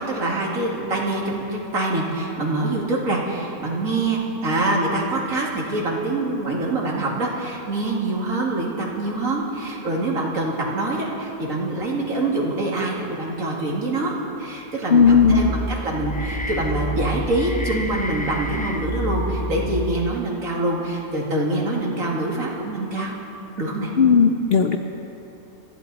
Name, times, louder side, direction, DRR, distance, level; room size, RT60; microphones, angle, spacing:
voice 1, 0.0-23.1 23.6-23.9, right 2 dB, 65° right, -3 dB, 2.8 m, -25 dB
voice 2, 14.9-15.5 24.0-24.8, left 6 dB, 50° left, 5 dB, 0.8 m, -15 dB
sound 1, 14.9-20.3, equal, 10° left, 0.4 m, -29 dB
24.0 x 14.5 x 4.1 m, 2.8 s
omnidirectional pair, 1.5 m